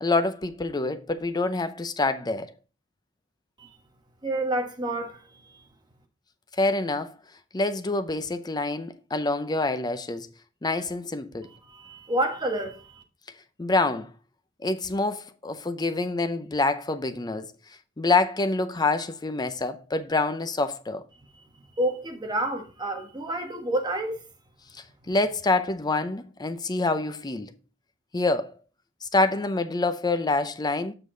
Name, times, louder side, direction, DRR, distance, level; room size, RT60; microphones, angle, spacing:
voice 1, 0.0-2.5 6.6-7.2 7.5-10.3 10.6-11.5 13.6-14.1 14.6-17.5 18.0-21.0 25.1-27.5 28.1-28.5 29.0-30.9, left 3 dB, 20° left, 0.6 m, -26 dB
voice 2, 4.2-5.6 11.4-13.0 21.3-21.4 21.8-24.2, right 1 dB, 20° right, 1.3 m, -29 dB
7.2 x 6.0 x 3.8 m
head